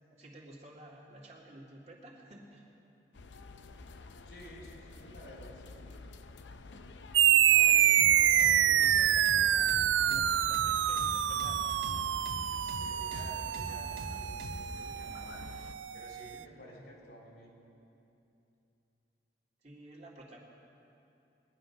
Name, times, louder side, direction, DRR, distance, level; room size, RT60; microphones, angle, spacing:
voice 1, 0.1-2.7 8.5-12.0 16.7-16.9 19.6-20.4, right 1 dB, 35° right, -3 dB, 2.1 m, -52 dB
sound 1, 3.1-15.7, left 3 dB, 80° left, 0.6 m, -50 dB
voice 2, 4.3-5.9 7.4-8.9 12.6-15.5 15.9-17.5, equal, 65° left, -2 dB, 3.1 m, -52 dB
sound 2, 7.1-16.0, right 11 dB, 85° right, 0.3 m, -27 dB
sound 3, 8.0-14.7, equal, 55° right, 1.3 m, -43 dB
21.0 x 10.5 x 5.7 m, 2.8 s
head